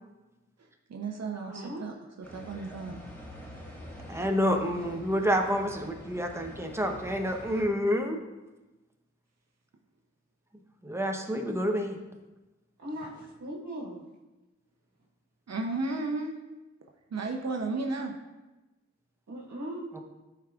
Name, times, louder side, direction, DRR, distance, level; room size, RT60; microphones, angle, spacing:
voice 1, 0.6-3.0 3.5-3.6 15.5-16.3 17.1-18.1, right 3 dB, 60° right, 2 dB, 0.8 m, -34 dB
voice 2, 1.5-1.9 12.8-14.0 19.3-19.9, right 1 dB, 75° right, -4 dB, 1.4 m, -39 dB
sound 1, 2.2-7.6, equal, 5° left, 1.8 m, -46 dB
voice 3, 4.1-8.2 10.8-12.0 19.9-20.0, equal, 10° right, 3 dB, 0.9 m, -28 dB
11.0 x 4.6 x 2.4 m, 1.1 s
wide cardioid pair, 65°, 29 cm